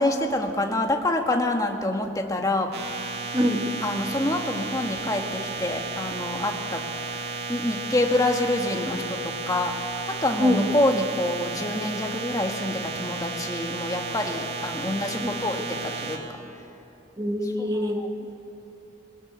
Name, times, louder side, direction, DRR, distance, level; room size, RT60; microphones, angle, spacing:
voice 1, 0.0-2.7 3.8-16.2 16.5-16.6 17.6-18.1, left 1 dB, 20° left, 3 dB, 1.9 m, -27 dB
sound 1, 2.7-16.2, right 3 dB, 65° right, 2.8 m, -33 dB
voice 2, 3.3-3.6 10.4-10.7 15.2-15.4 17.2-18.0, left 1 dB, 25° right, 1 dB, 2.6 m, -24 dB
21.0 x 21.0 x 8.0 m, 2.9 s
head